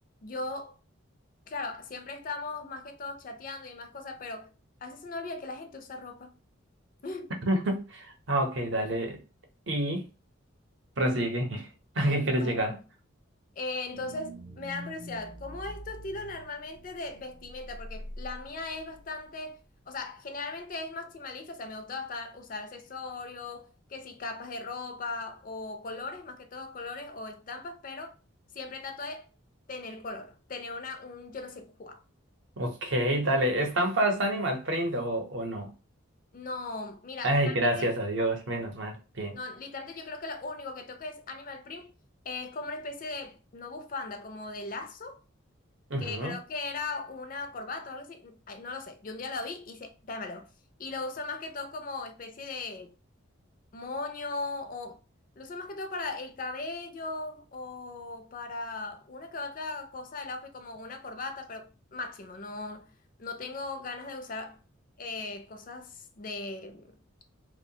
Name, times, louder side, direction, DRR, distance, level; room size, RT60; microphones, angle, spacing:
voice 1, 0.2-0.7 1.5-4.5 4.8-6.3 7.0-7.3 12.1-12.8 13.6-19.6 19.9-28.1 28.5-29.3 29.7-32.0 36.3-37.9 39.3-41.9 42.3-45.2 46.0-50.5 50.8-52.9 53.7-55.0 55.4-62.9 63.2-64.6 65.0-67.0, left 3 dB, 40° left, 0.4 m, -38 dB
voice 2, 7.5-9.2 9.7-10.1 11.0-11.7 12.0-12.8 32.6-35.7 37.2-39.4 45.9-46.4, right 1 dB, 65° right, 0.7 m, -28 dB
sound 1, 13.9-19.6 19.9-20.0, equal, 35° right, 0.4 m, -45 dB
2.9 x 2.1 x 2.7 m
head